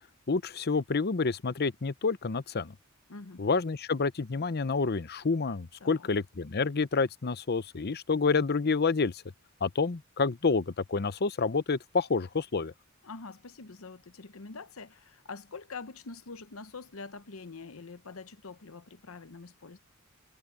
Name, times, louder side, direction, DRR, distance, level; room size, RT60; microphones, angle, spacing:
voice 1, 0.3-2.7 3.4-9.2 9.6-12.7, left 4 dB, 50° left, 0.7 m, -28 dB
voice 2, 3.1-3.5 5.8-6.1 13.0-19.8, left 4 dB, 75° left, 0.9 m, -45 dB
head